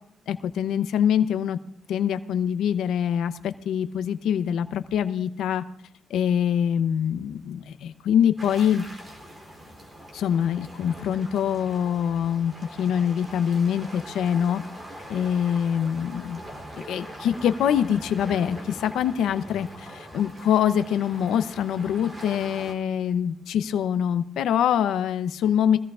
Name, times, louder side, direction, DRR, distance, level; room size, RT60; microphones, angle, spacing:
voice 1, 0.3-1.6 1.9-5.6 6.1-8.8 10.1-12.5 12.8-14.6 15.1-16.4 16.7-25.8, left 9 dB, 75° left, 10 dB, 0.7 m, -24 dB
sound 1, 8.4-22.7, equal, 25° right, 3.2 m, -42 dB
22.5 x 16.5 x 2.5 m, 0.70 s
cardioid pair, 145°, 0 cm